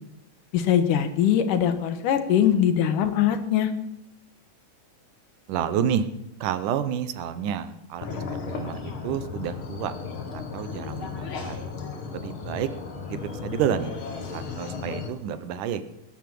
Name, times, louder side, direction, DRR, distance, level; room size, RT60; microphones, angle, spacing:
voice 1, 0.5-3.7, left 9 dB, 80° left, 8 dB, 2.9 m, -22 dB
voice 2, 5.5-6.1 6.4-8.2 8.5-9.9 10.3-11.7 12.1-12.7 13.1-14.0 14.3-15.8, right 9 dB, 75° right, 12 dB, 2.5 m, -29 dB
sound 1, 8.0-15.1, left 5 dB, 45° left, 2.3 m, -35 dB
19.0 x 8.9 x 7.7 m, 0.81 s
omnidirectional pair, 3.7 m